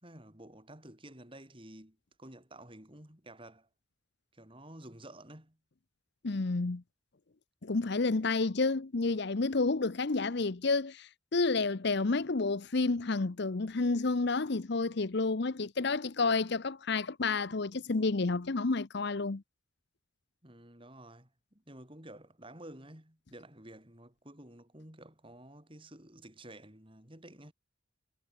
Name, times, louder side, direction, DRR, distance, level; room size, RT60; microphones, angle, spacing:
voice 1, 0.0-3.7 4.3-5.6 20.4-27.5, right 1 dB, 25° right, 4.4 m, -51 dB
voice 2, 6.2-6.8 7.6-19.4, left 3 dB, 55° left, 0.7 m, -30 dB
head